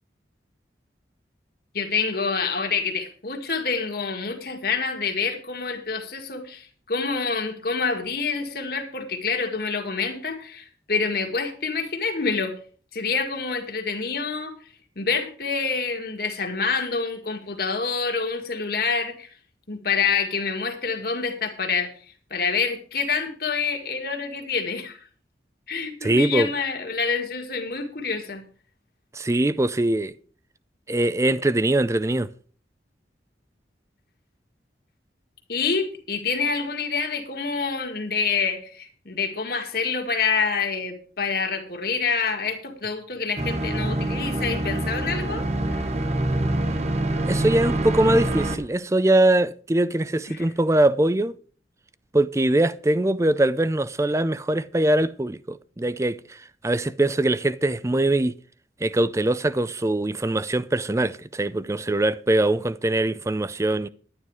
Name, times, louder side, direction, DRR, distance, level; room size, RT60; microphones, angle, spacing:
voice 1, 1.7-12.5 12.9-14.6 15.0-19.3 19.7-21.9 22.3-25.0 25.7-28.4 35.5-45.8 50.3-50.5, left 5 dB, 55° left, 2.0 m, -27 dB
voice 2, 26.0-26.5 29.1-30.1 30.9-32.3 47.3-51.4 52.1-58.3 58.8-63.9, right 1 dB, 15° right, 0.4 m, -22 dB
sound 1, 43.4-48.6, right 1 dB, 35° right, 1.1 m, -25 dB
11.0 x 9.8 x 4.8 m
head